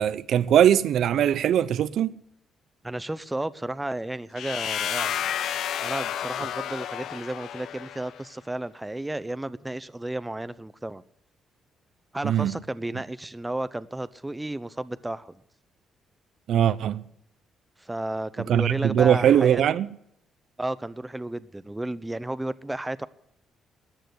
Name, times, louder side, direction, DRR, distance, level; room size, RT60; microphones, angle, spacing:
voice 1, 0.0-2.2 12.2-12.6 16.5-17.0 18.5-19.9, right 10 dB, 70° right, 0.7 m, -21 dB
voice 2, 2.8-5.2 5.8-11.0 12.1-15.3 17.8-19.6 20.6-23.1, right 1 dB, 10° right, 0.7 m, -33 dB
sound 1, 4.4-8.2, left 10 dB, 75° left, 0.7 m, -31 dB
14.0 x 9.1 x 7.9 m
cardioid pair, 90°, 0 cm